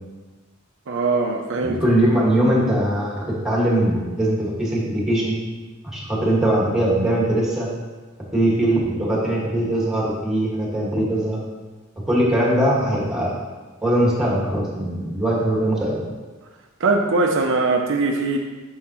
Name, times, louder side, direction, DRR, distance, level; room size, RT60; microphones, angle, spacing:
voice 1, 0.9-1.8 2.1-2.2 16.8-18.4, right 3 dB, 60° right, 2 dB, 0.6 m, -21 dB
voice 2, 1.6-5.3 5.8-7.7 8.3-11.4 12.1-13.3 13.8-16.0, right 1 dB, 5° right, -5 dB, 1.8 m, -21 dB
7.3 x 6.4 x 3.0 m, 1.3 s
head